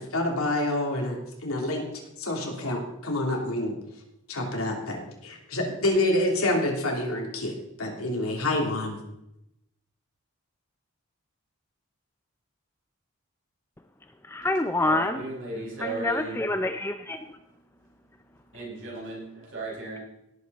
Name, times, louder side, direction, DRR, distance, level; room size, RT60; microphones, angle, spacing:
voice 1, 0.0-1.9 2.2-3.7 4.3-9.0, left 1 dB, 80° left, 1 dB, 3.0 m, -27 dB
voice 2, 14.2-15.2 15.8-17.3, left 2 dB, 10° left, 8 dB, 0.4 m, -27 dB
voice 3, 14.8-16.4 18.5-20.0, right 2 dB, 60° right, -3 dB, 5.6 m, -36 dB
17.5 x 8.1 x 4.0 m, 0.84 s
head